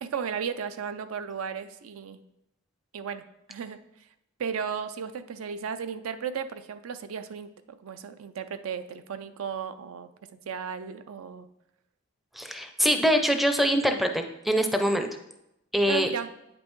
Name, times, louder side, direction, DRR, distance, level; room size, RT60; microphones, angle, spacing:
voice 1, 0.0-2.2 2.9-3.8 4.4-10.1 10.5-11.5 15.9-16.3, right 7 dB, 75° right, 11 dB, 0.4 m, -35 dB
voice 2, 12.4-15.1 15.7-16.1, equal, ahead, 6 dB, 0.4 m, -24 dB
8.4 x 5.3 x 3.1 m, 0.86 s
head